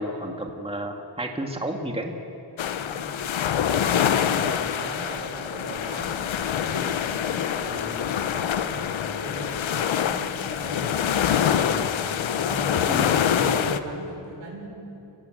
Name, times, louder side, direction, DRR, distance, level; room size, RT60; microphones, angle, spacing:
voice 1, 0.0-2.1 12.9-13.0, right 1 dB, 10° right, 2 dB, 2.1 m, -31 dB
sound 1, 2.6-13.8, left 9 dB, 90° left, 0.9 m, -25 dB
voice 2, 2.7-3.2 3.8-6.9 7.3-11.9 12.3-14.7, right 1 dB, 85° right, -1 dB, 6.2 m, -38 dB
29.0 x 15.5 x 7.9 m, 3.0 s
cardioid pair, 80°, 45 cm